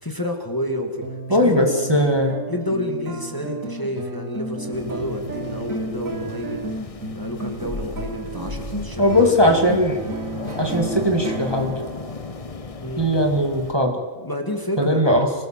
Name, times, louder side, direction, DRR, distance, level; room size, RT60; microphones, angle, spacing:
voice 1, 0.0-1.7 2.5-6.7 7.1-9.3 12.8-13.1 14.2-15.1, left 1 dB, 15° left, 3 dB, 2.3 m, -29 dB
sound 1, 1.0-13.8, right 2 dB, 70° right, 2.1 m, -33 dB
voice 2, 1.3-2.4 9.0-10.0 10.6-11.8 13.0-14.0 14.8-15.3, equal, 15° right, 2 dB, 2.2 m, -19 dB
sound 2, 4.7-13.7, left 4 dB, 30° left, 0.8 m, -35 dB
26.0 x 19.5 x 7.6 m, 1.4 s
omnidirectional pair, 1.5 m